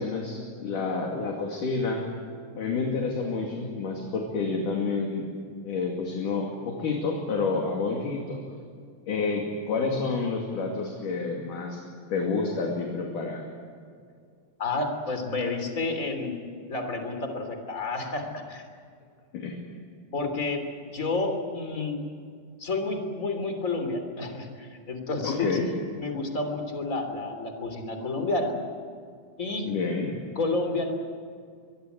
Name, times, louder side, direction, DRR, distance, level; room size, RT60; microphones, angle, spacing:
voice 1, 0.0-2.1 2.6-5.3 5.6-8.4 9.1-11.8 12.1-13.5 19.3-19.6 25.2-25.7 29.6-30.2, left 4 dB, 55° left, 0 dB, 3.7 m, -29 dB
voice 2, 14.6-16.3 16.7-18.6 20.1-20.6 20.9-22.0 22.6-25.6 26.0-28.5 29.4-29.7 30.3-30.9, left 3 dB, 20° left, 5 dB, 3.0 m, -30 dB
24.5 x 22.5 x 8.2 m, 2.2 s
omnidirectional pair, 4.9 m